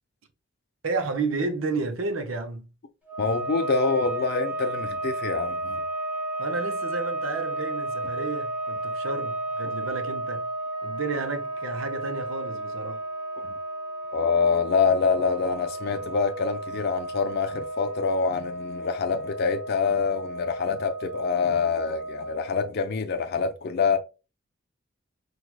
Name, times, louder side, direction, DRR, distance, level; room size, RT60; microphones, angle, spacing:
voice 1, 0.8-2.7 6.4-10.5 10.8-13.0, right 3 dB, 80° right, 0.7 m, -31 dB
sound 1, 3.0-22.7, right 2 dB, 10° right, 0.8 m, -33 dB
voice 2, 3.2-5.8 13.4-13.5 14.1-24.0, left 5 dB, 55° left, 0.5 m, -26 dB
4.5 x 2.3 x 2.3 m
head